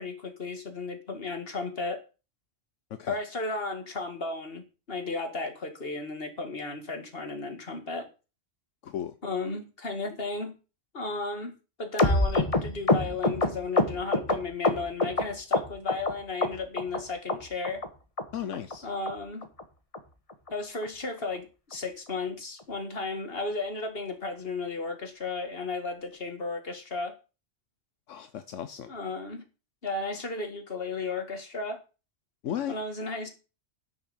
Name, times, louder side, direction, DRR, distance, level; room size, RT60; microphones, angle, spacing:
voice 1, 0.0-2.0 3.1-8.1 9.2-10.6 10.9-17.8 18.8-19.5 20.5-27.1 28.9-29.4 29.8-31.8 32.7-33.3, left 3 dB, 50° left, 2.2 m, -34 dB
voice 2, 8.8-9.1 18.3-18.9 28.1-28.9 32.4-32.8, left 10 dB, 80° left, 1.1 m, -35 dB
sound 1, 12.0-15.2 15.5-16.1 16.4-17.0 17.3-17.4 17.6-17.9 18.2-18.3 18.5-18.7 19.1-19.2 19.4-19.6 19.9-20.0 20.3-20.5 20.8-20.9 21.2-21.4 21.7-21.8, left 2 dB, 30° left, 1.5 m, -25 dB
10.5 x 6.4 x 7.0 m
omnidirectional pair, 1.2 m